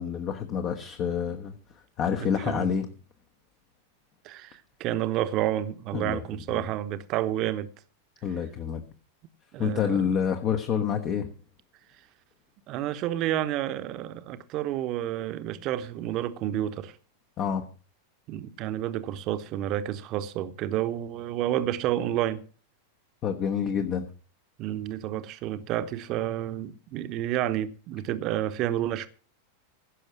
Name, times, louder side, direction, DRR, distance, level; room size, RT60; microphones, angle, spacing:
voice 1, 0.0-2.9 5.9-6.2 6.5-6.6 8.2-8.8 9.6-11.3 17.4-17.7 23.2-24.1, left 7 dB, 35° left, 1.1 m, -28 dB
voice 2, 2.2-2.7 4.2-7.7 9.5-10.1 12.7-17.0 18.3-22.4 24.6-29.1, right 12 dB, 40° right, 1.0 m, -30 dB
16.0 x 6.5 x 6.1 m
figure-of-eight pair, 90°, 0 cm